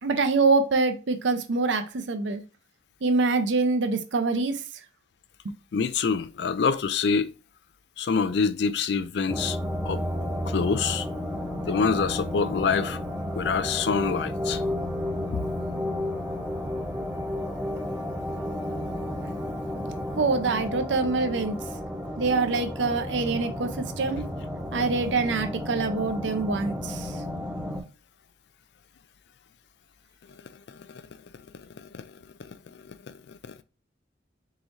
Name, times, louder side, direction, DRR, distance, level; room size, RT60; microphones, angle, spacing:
voice 1, 0.0-2.4 3.0-4.6 5.4-5.5 20.2-21.6 22.2-24.2 24.7-27.2, right 3 dB, 75° right, 0.6 m, -25 dB
voice 2, 5.7-7.3 8.0-9.6 9.9-10.0 10.5-11.1 11.7-13.0 13.3-14.6 15.3-15.4 24.8-24.9 30.7-31.0 31.8-32.0 32.4-32.5 33.1-33.2, left 5 dB, 60° left, 0.4 m, -26 dB
sound 1, 9.3-27.8, left 1 dB, 10° right, 0.6 m, -32 dB
4.0 x 3.8 x 3.0 m
head